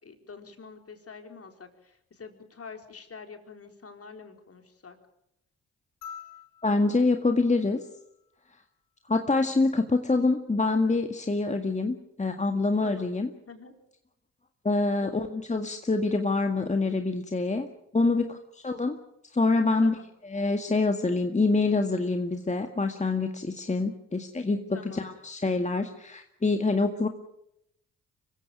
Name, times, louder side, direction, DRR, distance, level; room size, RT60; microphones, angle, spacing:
voice 1, 0.0-5.0 12.8-13.1 13.5-13.7 15.0-15.2 18.0-18.3 19.8-20.0 24.7-25.0, left 5 dB, 45° left, 5 dB, 4.3 m, -46 dB
sound 1, 6.0-8.6 10.2-10.3, left 8 dB, 70° left, 5.4 m, -48 dB
voice 2, 6.6-7.8 9.1-13.3 14.6-17.7 17.9-18.3 18.6-19.0 19.3-20.0 20.3-27.1, left 3 dB, 20° left, 6 dB, 1.9 m, -26 dB
24.5 x 15.5 x 9.1 m, 0.79 s
hypercardioid pair, 50°, 34 cm